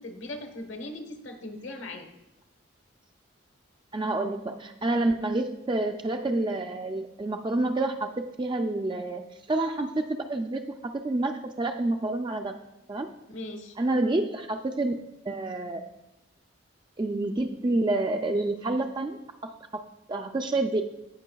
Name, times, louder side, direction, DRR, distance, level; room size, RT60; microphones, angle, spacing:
voice 1, 0.0-2.1 13.3-13.8, left 1 dB, 70° left, 5 dB, 1.2 m, -39 dB
voice 2, 3.9-10.6 10.9-12.6 12.9-13.1 13.8-15.0 15.2-15.8 17.0-19.2 19.7-19.8 20.1-20.8, right 2 dB, 25° right, 4 dB, 0.3 m, -28 dB
16.0 x 5.5 x 2.3 m, 0.91 s
head